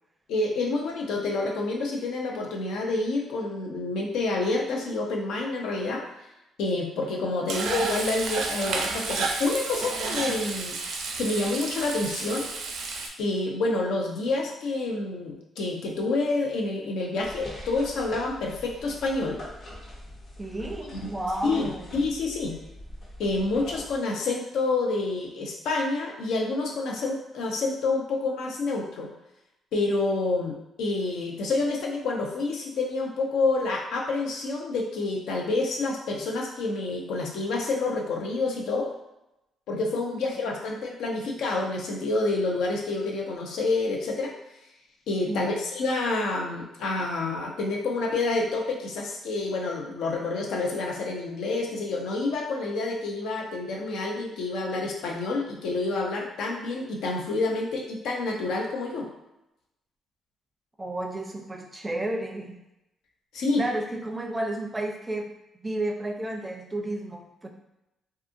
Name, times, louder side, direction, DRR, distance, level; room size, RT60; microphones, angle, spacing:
voice 1, 0.3-6.0 6.6-10.8 11.2-12.5 13.2-19.4 21.4-22.6 23.2-29.1 29.7-38.9 39.7-44.3 45.1-59.1 63.3-63.6, left 3 dB, 80° left, 0 dB, 0.5 m, -28 dB
Frying (food), 7.5-13.1, right 3 dB, 75° right, 0.4 m, -31 dB
sound 1, 17.2-24.0, left 1 dB, 50° left, 0.8 m, -43 dB
voice 2, 20.4-21.9 45.3-45.6 60.8-62.6 63.6-65.3 65.6-67.5, right 1 dB, 15° right, 1 dB, 0.4 m, -32 dB
2.6 x 2.4 x 2.6 m, 0.91 s
cardioid pair, 90°, 0 cm